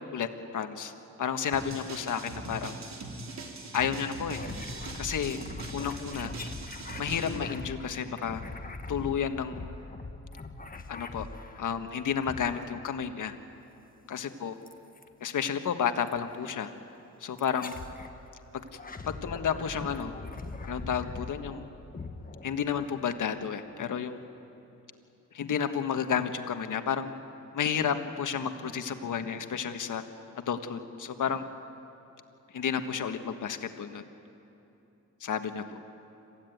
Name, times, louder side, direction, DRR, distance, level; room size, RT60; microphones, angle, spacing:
voice 1, 0.5-0.9 1.2-2.8 3.7-4.4 4.9-5.4 5.7-6.3 7.0-8.4 8.9-9.7 10.9-11.3 11.6-13.3 14.1-14.5 15.2-16.7 17.2-17.8 19.2-20.1 20.6-21.6 22.4-24.2 25.3-27.2 27.5-30.0 30.4-31.4 32.5-34.0 35.2-35.6, left 7 dB, 70° left, 8 dB, 1.5 m, -31 dB
sound 1, 1.5-7.5, right 3 dB, 60° right, 3.4 m, -41 dB
sound 2, 4.3-11.8 12.2-13.0 14.7-15.1 16.1-16.2 17.4-18.2 18.6-23.0, left 3 dB, 25° left, 1.5 m, -42 dB
26.5 x 15.5 x 9.2 m, 2.9 s
cardioid pair, 80°, 32 cm